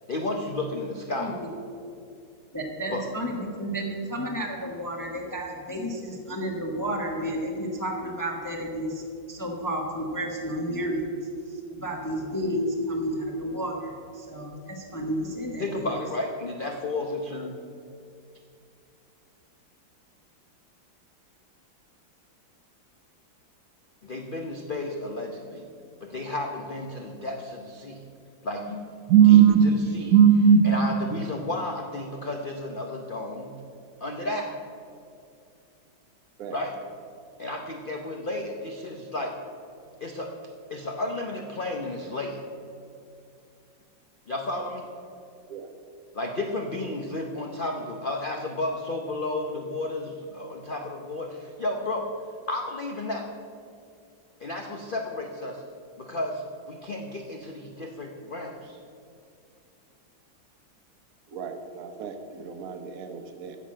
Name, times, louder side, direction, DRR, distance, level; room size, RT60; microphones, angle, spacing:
voice 1, 0.1-1.3 2.9-3.0 15.6-17.6 24.0-25.7 26.0-28.0 28.4-29.4 29.9-30.1 30.6-33.6 34.0-34.5 36.5-36.7 37.4-39.3 40.0-40.3 40.7-42.4 44.3-44.9 46.1-52.1 52.5-53.3 54.4-55.6 56.0-58.8, left 2 dB, 75° left, 2 dB, 0.4 m, -32 dB
voice 2, 2.5-9.0 9.3-11.2 11.5-16.0, equal, 15° left, 0 dB, 0.7 m, -31 dB
voice 3, 29.1-29.6 30.1-30.6 31.1-31.2 36.4-36.6 45.5-45.7 61.3-63.6, right 8 dB, 55° right, 6 dB, 1.2 m, -19 dB
9.6 x 7.2 x 7.5 m, 2.4 s
omnidirectional pair, 2.1 m